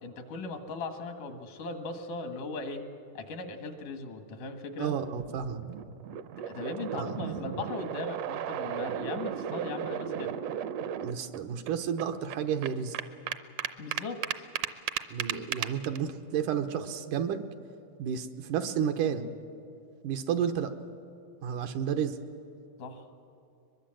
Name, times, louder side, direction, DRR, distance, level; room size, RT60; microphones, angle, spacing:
voice 1, 0.0-2.8 3.1-5.0 6.5-10.3 13.8-14.4 22.8-23.1, left 3 dB, 80° left, 6 dB, 3.2 m, -38 dB
voice 2, 4.8-5.6 6.9-7.2 11.0-13.0 15.1-17.4 18.0-19.3 20.0-20.8 21.4-22.2, right 8 dB, 90° right, 7 dB, 2.6 m, -31 dB
sound 1, 5.2-11.4 11.7-11.8 12.0-16.0, right 10 dB, 75° right, 1.6 m, -35 dB
23.0 x 22.0 x 7.8 m, 2.7 s
omnidirectional pair, 3.5 m